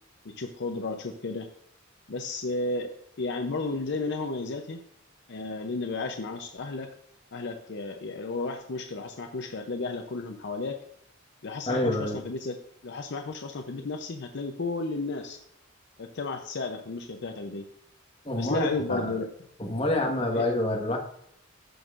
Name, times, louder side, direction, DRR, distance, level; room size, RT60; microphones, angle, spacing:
voice 1, 0.2-1.5 2.1-2.9 3.2-4.8 5.3-6.9 7.3-10.8 11.4-12.6 12.8-15.4 16.0-17.7 18.4-19.3 20.3-20.5, left 3 dB, 60° left, 5 dB, 0.6 m, -33 dB
voice 2, 11.7-12.2 18.2-19.1 19.6-21.0, left 1 dB, 30° left, 0 dB, 1.4 m, -27 dB
14.5 x 6.2 x 2.5 m, 0.72 s
head